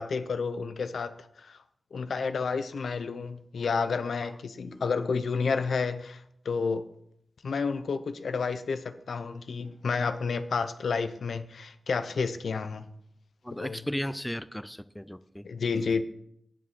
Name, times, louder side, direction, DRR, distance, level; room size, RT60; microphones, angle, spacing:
voice 1, 0.0-1.6 1.9-6.9 7.4-12.9 13.5-13.8 15.4-16.0, left 5 dB, 90° left, 0.7 m, -30 dB
voice 2, 13.4-15.5, equal, 5° left, 0.5 m, -36 dB
16.5 x 7.6 x 4.2 m
wide cardioid pair, 115°, 0 cm